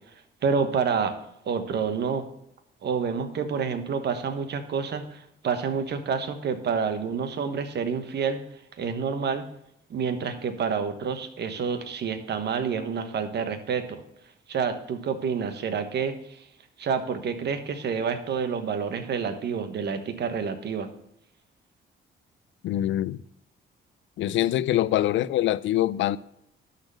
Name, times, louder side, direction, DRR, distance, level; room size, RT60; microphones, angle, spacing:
voice 1, 0.4-1.2 1.4-2.3 2.8-8.4 8.8-9.5 9.9-14.0 14.5-16.5 16.8-20.9, right 6 dB, 60° right, 1.3 m, -28 dB
voice 2, 22.6-23.2 24.2-26.2, left 13 dB, 70° left, 0.5 m, -24 dB
11.5 x 4.3 x 6.4 m
cardioid pair, 90°, 20 cm